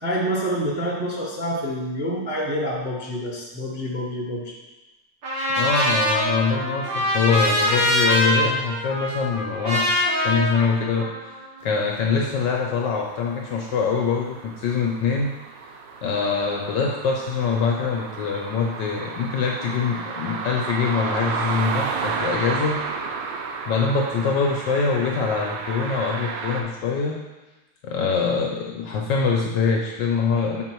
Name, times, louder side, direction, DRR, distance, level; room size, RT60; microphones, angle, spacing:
voice 1, 0.0-4.5, equal, 10° right, -4 dB, 0.6 m, -27 dB
Trumpet, 5.2-11.4, left 1 dB, 70° right, 2.3 m, -23 dB
voice 2, 5.6-9.9 10.2-11.3 11.6-15.3 16.0-27.2 27.8-30.6, left 5 dB, 70° left, 0 dB, 1.1 m, -24 dB
sound 1, 11.9-26.6, right 5 dB, 85° right, 1.6 m, -32 dB
6.2 x 4.1 x 4.5 m, 1.1 s
omnidirectional pair, 2.4 m